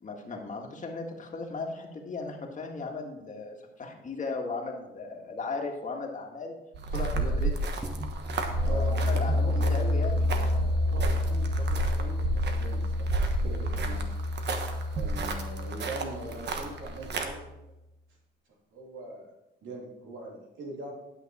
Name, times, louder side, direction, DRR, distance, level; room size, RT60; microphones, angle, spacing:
voice 1, 0.0-6.6 6.9-7.6 8.6-10.9, left 3 dB, 40° left, 1 dB, 1.8 m, -37 dB
sound 1, 6.7-17.3, right 2 dB, 60° right, 1.3 m, -32 dB
sound 2, 7.8-17.4, left 1 dB, ahead, 1.3 m, -30 dB
voice 2, 8.6-9.7 10.8-13.1 13.4-14.0 14.9-17.4 18.7-19.3 19.6-20.9, right 2 dB, 75° right, -2 dB, 3.0 m, -41 dB
11.0 x 6.4 x 4.3 m, 0.92 s
cardioid pair, 90°, 20 cm